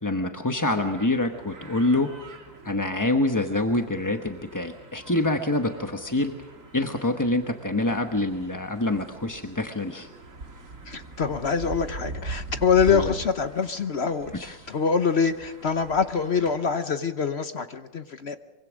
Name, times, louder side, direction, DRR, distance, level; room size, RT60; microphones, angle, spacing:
voice 1, 0.0-2.1 2.6-6.3 6.7-10.1 12.9-13.1, left 2 dB, 15° left, 5 dB, 0.6 m, -26 dB
sound 1, 0.7-16.8, right 3 dB, 45° right, 2.5 m, -42 dB
voice 2, 10.8-18.4, left 6 dB, 50° left, 10 dB, 0.8 m, -25 dB
24.0 x 24.0 x 6.3 m, 1.2 s
omnidirectional pair, 2.0 m